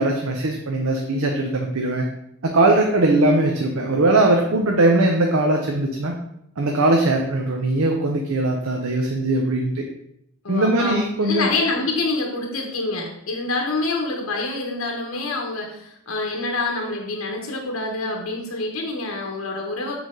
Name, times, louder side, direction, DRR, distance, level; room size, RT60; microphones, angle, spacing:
voice 1, 0.0-2.0 2.4-6.2 6.6-9.8 10.5-11.5, right 2 dB, 85° right, 2 dB, 0.7 m, -20 dB
voice 2, 10.4-19.9, left 2 dB, 85° left, 1 dB, 1.0 m, -26 dB
7.8 x 3.5 x 3.7 m, 0.76 s
head